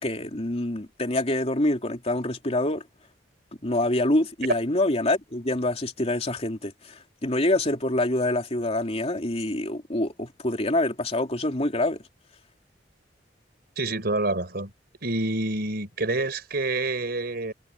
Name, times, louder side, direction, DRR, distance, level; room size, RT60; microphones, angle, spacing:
voice 1, 0.0-2.8 3.6-12.0, left 1 dB, 35° left, 3.0 m, -26 dB
voice 2, 13.8-14.7 15.0-17.5, right 2 dB, 60° right, 4.5 m, -27 dB
head